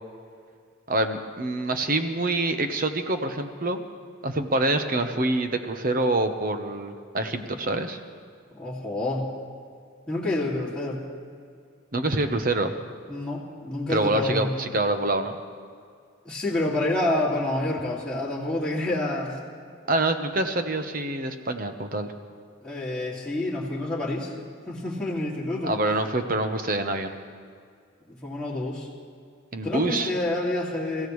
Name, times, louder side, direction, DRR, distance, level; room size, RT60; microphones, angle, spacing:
voice 1, 0.9-3.8 4.2-8.0 11.9-12.7 13.9-15.4 19.9-22.1 25.6-27.1 29.5-30.1, right 2 dB, 45° right, 7 dB, 1.1 m, -26 dB
voice 2, 8.5-9.3 10.1-11.0 13.1-14.5 16.2-19.4 22.6-24.3 24.7-25.7 28.1-28.9 29.6-31.1, left 1 dB, 5° left, -8 dB, 2.6 m, -28 dB
29.0 x 15.5 x 3.2 m, 2.2 s
head